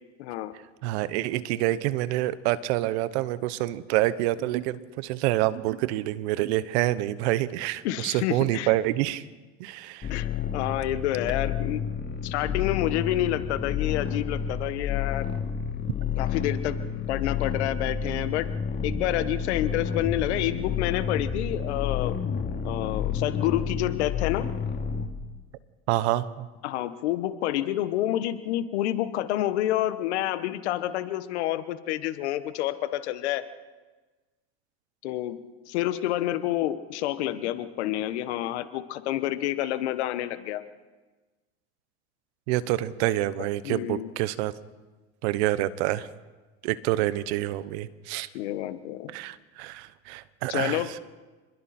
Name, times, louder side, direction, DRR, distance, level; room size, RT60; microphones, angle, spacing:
voice 1, 0.2-0.5 7.8-8.7 10.1-11.8 12.2-15.3 16.2-16.8 17.1-18.5 18.8-22.2 22.6-24.5 26.6-33.4 35.0-35.4 35.7-40.6 43.6-44.1 48.3-49.1 50.5-50.9, left 13 dB, 85° left, 11 dB, 1.5 m, -28 dB
voice 2, 0.8-9.2 9.6-10.1 25.9-26.5 42.5-44.5 45.2-46.1 46.6-48.3 49.1-51.0, right 15 dB, 80° right, 16 dB, 1.2 m, -27 dB
sound 1, 10.0-25.1, left 7 dB, 30° left, 3.0 m, -30 dB
29.0 x 21.5 x 4.4 m, 1.3 s
hypercardioid pair, 80°, 33 cm